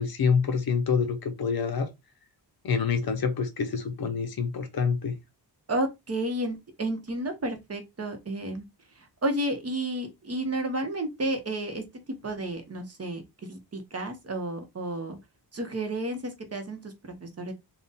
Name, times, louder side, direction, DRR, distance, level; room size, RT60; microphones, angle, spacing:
voice 1, 0.0-1.9 2.6-5.2, left 6 dB, 55° left, 0.7 m, -27 dB
voice 2, 5.7-8.6 9.0-11.8 12.2-13.2 13.5-15.2 15.5-17.5, right 1 dB, 35° right, 0.8 m, -31 dB
3.7 x 2.2 x 4.0 m
wide cardioid pair, 170°, 43 cm